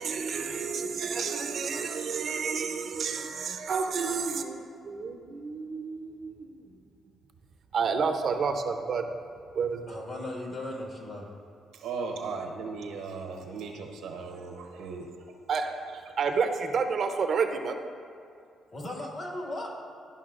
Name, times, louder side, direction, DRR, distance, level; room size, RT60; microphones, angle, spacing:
voice 1, 0.0-6.6 7.7-9.1 9.5-10.0 15.5-17.8, right 5 dB, 55° right, 0.6 m, -30 dB
voice 2, 9.9-11.3 18.7-19.7, left 1 dB, 50° left, 1.6 m, -37 dB
voice 3, 11.7-15.3 15.6-15.7, right 4 dB, 85° right, 0.8 m, -37 dB
12.0 x 5.4 x 2.5 m
cardioid pair, 90°, 0 cm